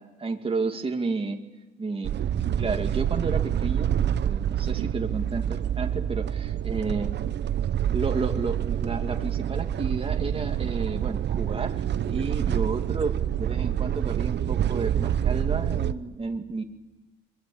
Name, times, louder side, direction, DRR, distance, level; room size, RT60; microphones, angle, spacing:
voice 1, 0.0-1.4 1.8-2.2 2.6-3.9 4.2-7.1 7.9-16.6, right 4 dB, 30° right, 4 dB, 2.3 m, -31 dB
sound 1, 2.0-15.9, right 10 dB, 60° right, 0.9 m, -27 dB
23.0 x 22.5 x 8.7 m, 1.1 s
cardioid pair, 90°, 20 cm